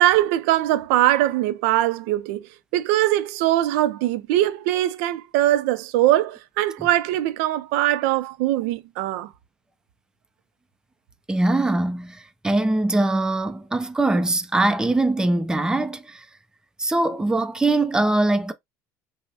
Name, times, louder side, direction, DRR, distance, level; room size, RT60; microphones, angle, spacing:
voice 1, 0.0-2.5 2.7-9.3, right 14 dB, 90° right, 0.4 m, -21 dB
voice 2, 11.3-16.3 16.8-18.5, right 2 dB, 10° right, 0.5 m, -22 dB
5.3 x 2.1 x 2.8 m
supercardioid pair, 105°, 8 cm